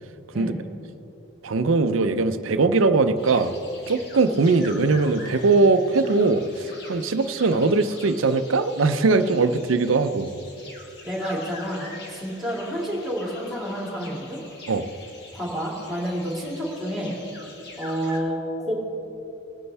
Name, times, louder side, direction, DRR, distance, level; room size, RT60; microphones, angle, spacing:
voice 1, 1.4-3.6 3.9-10.3 14.7-14.9, right 3 dB, 85° right, 10 dB, 0.6 m, -21 dB
sound 1, 3.2-18.2, left 2 dB, 55° left, 1.9 m, -44 dB
voice 2, 11.0-14.4 15.3-17.2 17.8-18.7, equal, ahead, -4 dB, 2.5 m, -29 dB
20.0 x 9.7 x 3.4 m, 2.9 s
head